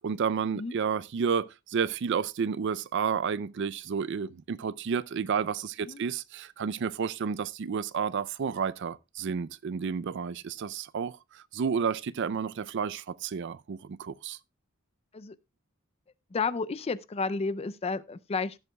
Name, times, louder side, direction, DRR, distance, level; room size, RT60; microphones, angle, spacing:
voice 1, 0.0-14.4, right 6 dB, 55° right, 0.4 m, -31 dB
voice 2, 16.3-18.6, left 4 dB, 30° left, 0.4 m, -32 dB
15.5 x 8.0 x 2.2 m
head